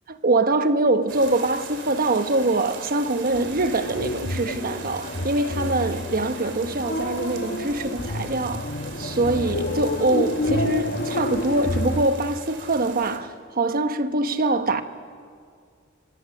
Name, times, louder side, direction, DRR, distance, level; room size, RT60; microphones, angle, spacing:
voice 1, 0.1-8.7 9.0-14.8, right 2 dB, 45° right, 1.1 m, -24 dB
sound 1, 1.1-13.2, right 5 dB, 60° right, 2.8 m, -41 dB
sound 2, 3.3-12.0, left 1 dB, 50° left, 1.2 m, -29 dB
27.0 x 23.0 x 6.5 m
head